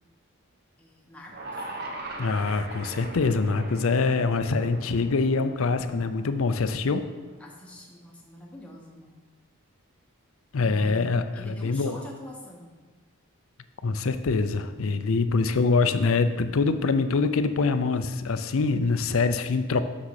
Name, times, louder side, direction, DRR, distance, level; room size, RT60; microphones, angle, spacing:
voice 1, 0.8-1.7 7.4-9.2 10.6-12.8, left 1 dB, 5° left, -2 dB, 1.0 m, -45 dB
sound 1, 1.3-7.5, right 2 dB, 45° right, 1.0 m, -40 dB
voice 2, 2.2-7.1 10.5-12.0 13.8-19.8, left 4 dB, 70° left, 10 dB, 0.5 m, -24 dB
6.5 x 6.0 x 5.8 m, 1.3 s
head